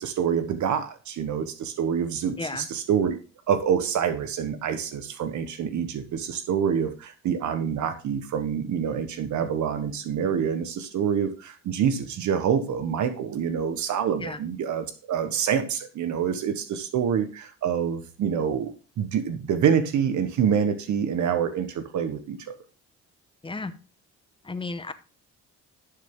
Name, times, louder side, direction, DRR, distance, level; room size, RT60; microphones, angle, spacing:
voice 1, 0.0-3.2 3.5-22.5, right 7 dB, 70° right, 9 dB, 1.2 m, -26 dB
voice 2, 23.4-23.7 24.4-24.9, left 3 dB, 15° left, 12 dB, 0.9 m, -33 dB
11.5 x 6.8 x 3.7 m, 0.35 s
cardioid pair, 90°, 30 cm